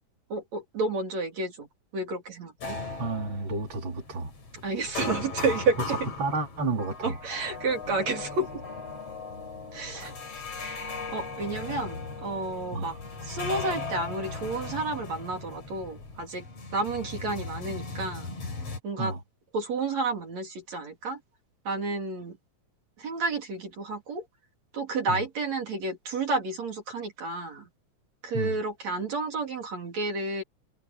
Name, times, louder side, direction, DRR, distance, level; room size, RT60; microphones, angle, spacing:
voice 1, 0.3-1.7 1.9-2.8 4.5-6.0 7.0-8.6 9.7-10.1 10.6-13.0 13.2-16.4 16.7-18.3 18.8-19.1 19.5-21.2 21.7-22.4 23.0-24.3 24.7-27.7 28.2-30.4, right 3 dB, 65° right, 4.3 m, -31 dB
sound 1, 2.6-18.8, left 4 dB, 55° left, 5.5 m, -38 dB
voice 2, 3.0-4.3 6.2-7.5 10.0-10.1 12.7-13.0 19.0-19.2 25.1-25.2 28.3-28.6, right 3 dB, 40° right, 4.1 m, -31 dB
omnidirectional pair, 3.4 m